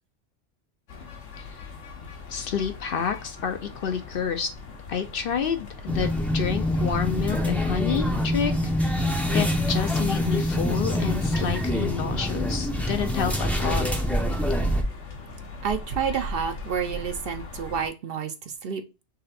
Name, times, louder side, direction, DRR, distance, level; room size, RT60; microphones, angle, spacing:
sound 1, 0.9-17.9, left 4 dB, 80° left, 1.4 m, -40 dB
voice 1, 2.3-4.5 4.9-8.5 8.8-13.9, left 7 dB, 60° left, 7 dB, 0.7 m, -29 dB
sound 2, 5.9-14.8, left 1 dB, ahead, 0.5 m, -25 dB
voice 2, 15.6-18.3 18.6-18.8, right 7 dB, 60° right, 7 dB, 0.7 m, -29 dB
3.9 x 3.2 x 4.1 m, 0.28 s
omnidirectional pair, 1.2 m